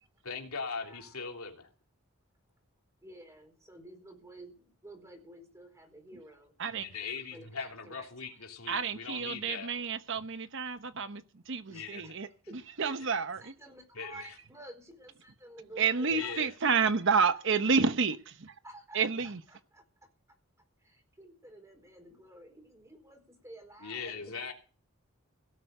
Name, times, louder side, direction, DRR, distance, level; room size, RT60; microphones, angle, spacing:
voice 1, 0.2-1.7 6.7-9.8 11.7-12.1 12.8-12.9 13.9-14.3 16.1-16.5 23.8-24.5, left 5 dB, 85° left, 3.1 m, -40 dB
voice 2, 0.8-1.2 3.0-6.5 7.3-8.1 11.7-12.8 13.4-16.9 18.6-20.1 20.8-24.5, right 1 dB, 15° right, 4.4 m, -52 dB
voice 3, 8.7-12.3 12.8-13.5 15.8-18.5 18.9-19.4, right 5 dB, 60° right, 0.9 m, -29 dB
17.0 x 8.0 x 6.7 m
head